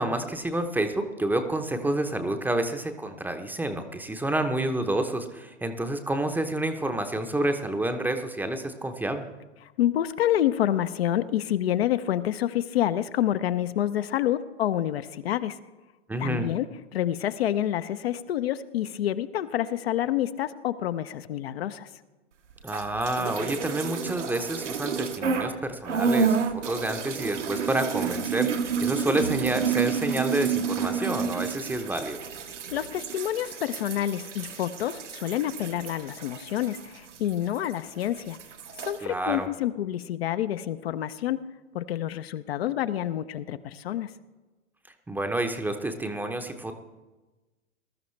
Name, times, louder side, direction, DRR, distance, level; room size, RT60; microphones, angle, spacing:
voice 1, 0.0-9.3 16.1-16.5 22.6-32.2 39.0-39.5 45.1-46.8, right 1 dB, 5° right, 7 dB, 0.8 m, -29 dB
voice 2, 9.6-15.6 16.2-21.9 32.7-38.4 38.8-41.4 41.7-44.1, left 12 dB, 55° left, 11 dB, 0.7 m, -28 dB
sound 1, 22.6-25.5 25.8-37.7 38.0-39.0, right 6 dB, 75° right, 1.4 m, -30 dB
20.5 x 12.5 x 3.2 m, 1.2 s
figure-of-eight pair, 110°, 36 cm